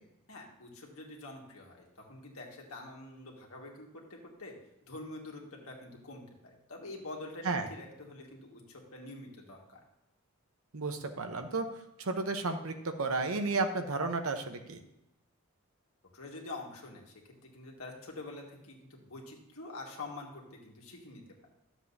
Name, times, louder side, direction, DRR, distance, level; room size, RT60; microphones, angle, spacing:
voice 1, 0.3-4.5 4.9-9.8 16.1-17.1 17.4-21.5, left 2 dB, 75° left, -1 dB, 1.8 m, -46 dB
voice 2, 10.7-11.7 12.0-14.8, right 3 dB, 75° right, 6 dB, 0.9 m, -32 dB
12.0 x 7.3 x 2.7 m, 0.88 s
head